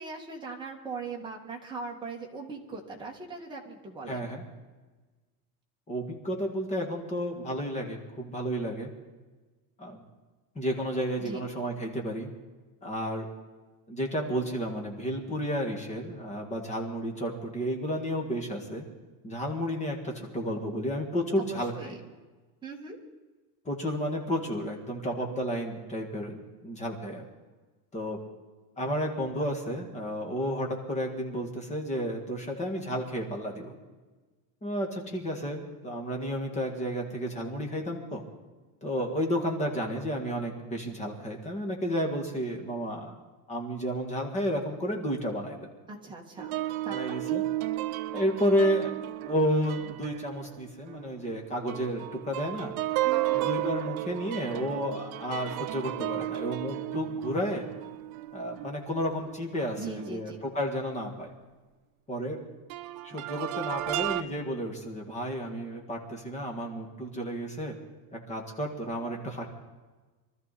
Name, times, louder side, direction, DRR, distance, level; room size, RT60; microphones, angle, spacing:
voice 1, 0.0-4.3 11.2-11.4 21.4-22.0 22.6-23.0 45.9-46.6 46.8-47.2 53.0-53.4 59.8-60.4, right 3 dB, 10° right, -2 dB, 1.8 m, -40 dB
voice 2, 4.1-4.4 5.9-8.9 9.8-10.0 10.6-12.3 12.8-13.3 13.9-18.9 19.2-22.0 23.7-27.3 27.9-28.2 28.8-33.7 34.6-38.2 38.8-43.2 43.5-45.7 46.9-47.4 48.1-48.9 49.3-52.7 53.3-57.7 58.3-61.3 62.1-62.4 63.0-67.8 68.1-69.5, equal, 15° left, 2 dB, 1.8 m, -32 dB
sound 1, 46.4-51.4 51.7-59.4 60.0-60.1 62.7-64.2, right 16 dB, 65° right, 0.7 m, -33 dB
24.0 x 13.5 x 4.2 m, 1.3 s
cardioid pair, 175°, 46 cm